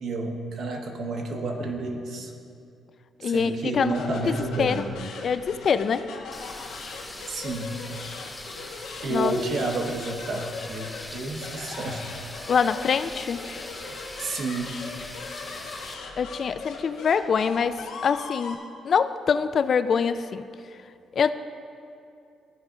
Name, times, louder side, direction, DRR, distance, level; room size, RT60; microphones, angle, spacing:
voice 1, 0.0-2.3 3.2-4.9 7.3-7.8 9.0-12.0 14.2-14.8, right 2 dB, 65° right, 2 dB, 1.1 m, -30 dB
voice 2, 3.2-4.8 5.2-6.1 9.1-9.3 12.5-13.4 16.2-18.6 18.8-20.5 21.1-21.3, left 6 dB, 50° left, 12 dB, 0.3 m, -24 dB
sound 1, 3.8-18.6, left 4 dB, 90° left, 1.1 m, -40 dB
sound 2, 6.3-15.9, left 1 dB, 10° left, 1.0 m, -41 dB
14.5 x 5.0 x 3.7 m, 2.5 s
cardioid pair, 90°, 0 cm